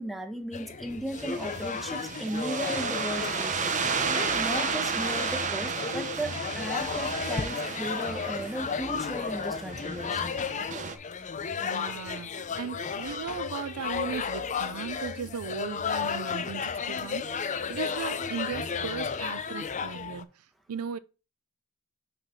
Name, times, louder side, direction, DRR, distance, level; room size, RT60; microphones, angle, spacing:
voice 1, 0.0-10.4, right 1 dB, ahead, 1.1 m, -36 dB
sound 1, 0.5-20.2, left 6 dB, 35° left, 0.5 m, -34 dB
sound 2, 1.2-10.9, right 5 dB, 35° right, 0.7 m, -33 dB
voice 2, 11.6-12.3 12.6-20.3 20.7-21.0, right 6 dB, 80° right, 0.4 m, -37 dB
5.6 x 3.9 x 5.7 m
head